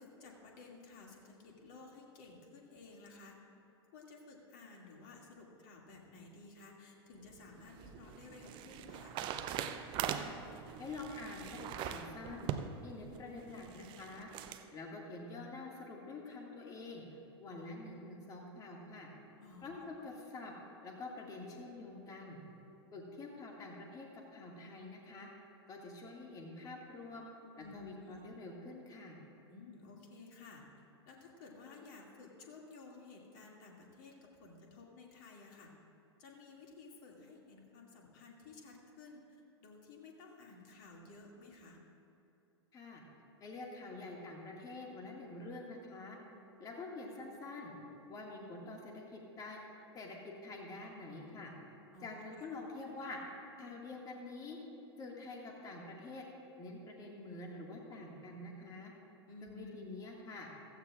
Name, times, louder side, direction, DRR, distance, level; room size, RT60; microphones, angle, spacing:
voice 1, 0.0-3.4 3.9-9.2 19.4-19.7 20.0-20.1 27.6-28.3 29.5-30.6 31.1-35.7 36.2-41.8 51.9-52.5 59.3-59.8, left 3 dB, 50° left, -1 dB, 2.4 m, -54 dB
sound 1, 7.3-14.6, right 9 dB, 35° right, 0.6 m, -42 dB
voice 2, 10.8-12.5 12.8-14.3 14.7-19.1 19.6-20.5 20.8-22.4 22.9-25.3 25.7-27.3 27.6-29.2 42.7-43.0 43.4-46.2 46.6-47.7 48.1-49.6 49.9-51.5 52.0-53.2 53.6-54.6 55.0-56.2 56.6-58.9 59.4-60.5, left 3 dB, 25° left, 0 dB, 2.0 m, -47 dB
15.5 x 15.0 x 2.5 m, 2.8 s
figure-of-eight pair, 95°, 14 cm